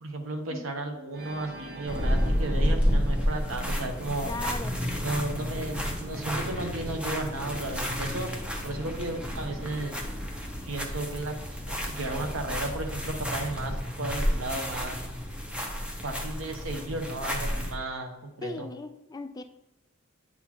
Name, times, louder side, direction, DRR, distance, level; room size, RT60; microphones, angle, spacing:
voice 1, 0.0-4.3 5.0-8.3 8.6-10.0 10.7-15.0 16.0-18.7, right 2 dB, 80° right, 5 dB, 0.9 m, -34 dB
Organ, 1.1-4.2, right 2 dB, 55° right, 0.6 m, -45 dB
sound 1, 1.9-17.7, equal, 5° right, 0.7 m, -31 dB
voice 2, 4.3-4.8 18.4-19.4, left 2 dB, 20° left, 8 dB, 0.3 m, -37 dB
8.5 x 4.2 x 2.9 m, 0.93 s
head